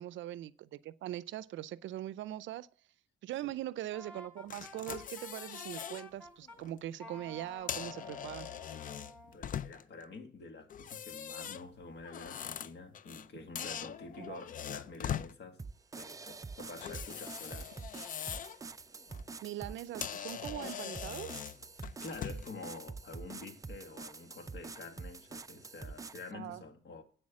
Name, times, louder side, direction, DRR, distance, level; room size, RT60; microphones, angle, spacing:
voice 1, 0.0-2.7 3.2-8.5 14.2-14.4 19.4-21.4 26.3-26.6, right 13 dB, 75° right, 0.5 m, -41 dB
Wind instrument woodwind instrument, 3.9-6.6 7.0-9.4, equal, 5° left, 3.0 m, -52 dB
sound 1, 4.5-6.0 6.5-6.7 7.5-10.0 10.7-13.3 13.6-15.3 16.8-18.6 19.0-19.2 19.7-19.8 20.0-22.5, left 9 dB, 45° left, 0.4 m, -42 dB
voice 2, 9.2-15.6 15.9-17.7 21.8-27.0, left 3 dB, 60° left, 1.9 m, -48 dB
sound 2, 15.6-26.3, right 4 dB, 15° right, 0.4 m, -46 dB
8.1 x 6.3 x 7.3 m
cardioid pair, 90°, 20 cm